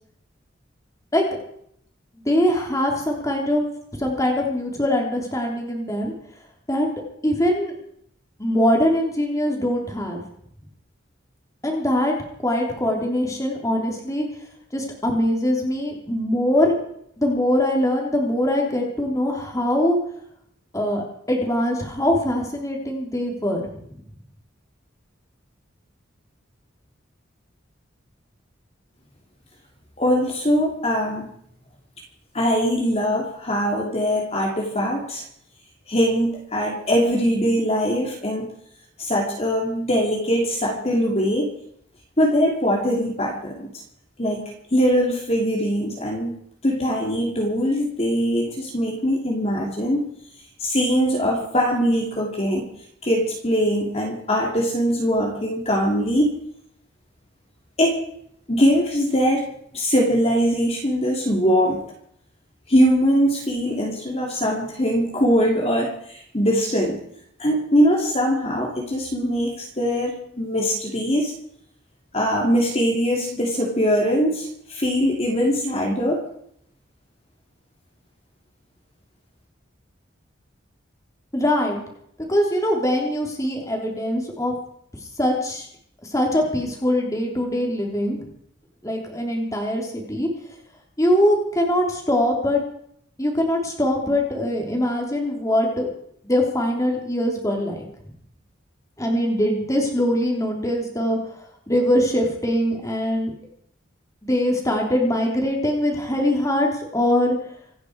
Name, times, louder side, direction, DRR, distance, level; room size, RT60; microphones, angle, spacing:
voice 1, 2.3-3.6 4.0-6.1 6.7-6.9 7.2-7.7 8.4-10.2 11.6-12.2 12.4-14.3 14.7-16.8 17.2-20.0 20.7-23.6 81.3-81.8 82.3-84.5 85.2-85.7 86.0-88.3 88.8-90.3 91.0-92.6 93.2-95.9 96.2-97.9 99.0-101.2 101.7-103.3 104.2-106.7 106.9-107.3, left 1 dB, 15° left, 0 dB, 3.4 m, -22 dB
voice 2, 30.0-31.3 32.3-35.2 35.9-38.5 39.0-41.5 42.2-43.7 44.2-46.3 46.6-50.1 50.6-52.7 53.0-56.3 57.8-58.0 58.5-59.5 59.7-61.8 62.7-67.0 67.4-71.3 72.1-76.2, equal, 35° left, -1 dB, 2.7 m, -22 dB
26.0 x 10.0 x 4.8 m, 0.69 s
head